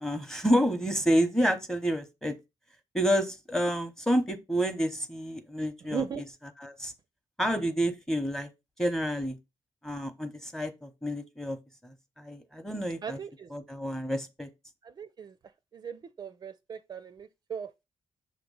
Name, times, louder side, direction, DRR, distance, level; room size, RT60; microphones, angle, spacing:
voice 1, 0.0-2.3 2.9-6.0 6.6-6.9 7.4-8.5 8.8-9.4 9.8-11.6 11.8-13.2 13.5-14.5, equal, 5° left, 0.8 m, -29 dB
voice 2, 5.9-6.2 13.0-13.5 14.8-15.3 15.7-17.8, right 7 dB, 40° right, 0.4 m, -38 dB
6.7 x 2.9 x 5.3 m
wide cardioid pair, 155°, 11 cm